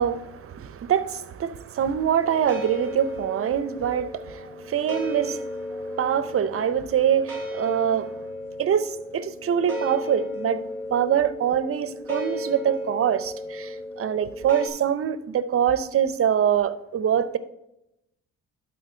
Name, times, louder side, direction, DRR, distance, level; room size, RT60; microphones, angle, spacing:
voice 1, 0.0-8.1 8.6-10.6 10.9-17.4, right 9 dB, 50° right, 0.6 m, -24 dB
sound 1, 2.2-14.7, left 1 dB, 5° left, 3.2 m, -34 dB
12.0 x 4.5 x 4.4 m
cardioid pair, 90°, 30 cm